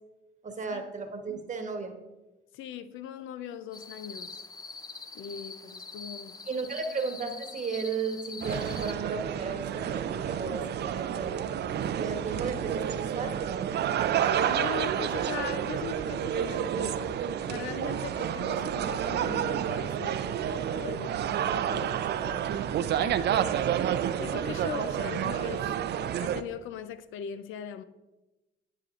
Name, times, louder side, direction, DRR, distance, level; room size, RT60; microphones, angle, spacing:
voice 1, 0.4-2.0 6.5-11.5 12.0-13.7, right 4 dB, 40° right, 1.1 m, -34 dB
voice 2, 2.5-4.4 5.1-6.4 14.5-17.2 17.5-23.5 23.9-25.7 26.2-27.8, left 9 dB, 85° left, 0.5 m, -40 dB
sound 1, 3.7-8.9, left 4 dB, 20° left, 0.5 m, -43 dB
sound 2, 8.4-26.4, right 9 dB, 60° right, 0.4 m, -30 dB
9.7 x 7.7 x 2.5 m
cardioid pair, 90°, 20 cm